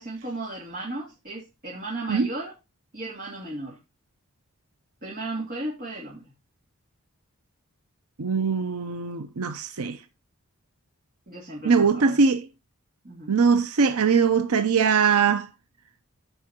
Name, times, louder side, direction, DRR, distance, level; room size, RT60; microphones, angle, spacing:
voice 1, 0.0-2.5 2.9-3.8 5.0-6.2 11.3-12.2 13.0-13.3, right 2 dB, 40° right, 3.1 m, -35 dB
voice 2, 8.2-10.0 11.6-12.5 13.3-15.5, right 5 dB, 80° right, 0.7 m, -21 dB
14.5 x 5.6 x 2.9 m
head